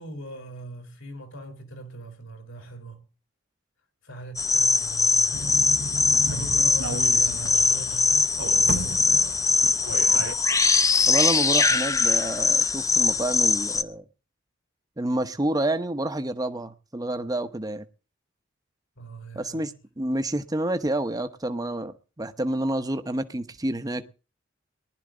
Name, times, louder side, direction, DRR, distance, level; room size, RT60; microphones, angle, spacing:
voice 1, 0.0-3.0 4.0-5.7 6.3-9.4 19.0-19.8, right 1 dB, 80° left, 4.0 m, -40 dB
sound 1, 4.4-13.8, left 4 dB, 15° left, 0.7 m, -22 dB
sound 2, 5.3-10.3, right 4 dB, 90° right, 0.7 m, -34 dB
voice 2, 11.1-14.0 15.0-17.8 19.3-24.0, right 1 dB, 20° right, 0.9 m, -28 dB
19.5 x 12.0 x 3.8 m
head